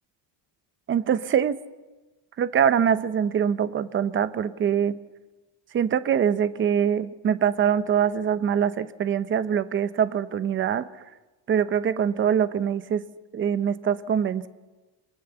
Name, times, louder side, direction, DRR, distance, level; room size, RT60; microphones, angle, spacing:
voice 1, 0.9-1.6 2.4-4.9 5.7-10.9 11.5-13.0 13.3-14.5, right 8 dB, 25° right, 14 dB, 0.8 m, -23 dB
27.0 x 23.5 x 7.0 m, 1.2 s
cardioid pair, 170°, 48 cm